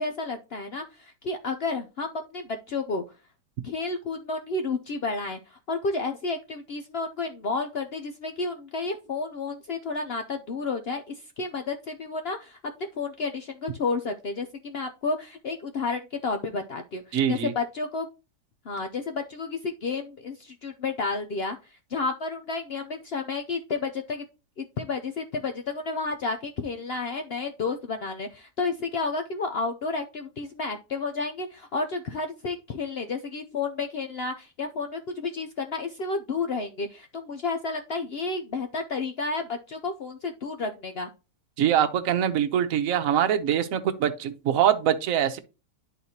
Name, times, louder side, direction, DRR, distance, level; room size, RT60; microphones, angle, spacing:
voice 1, 0.0-3.0 3.6-18.1 18.7-21.6 21.9-24.2 24.6-41.1, left 3 dB, 80° left, 0.5 m, -31 dB
voice 2, 17.1-17.5 41.6-45.4, right 9 dB, 60° right, 1.1 m, -23 dB
11.0 x 4.0 x 2.8 m
omnidirectional pair, 1.8 m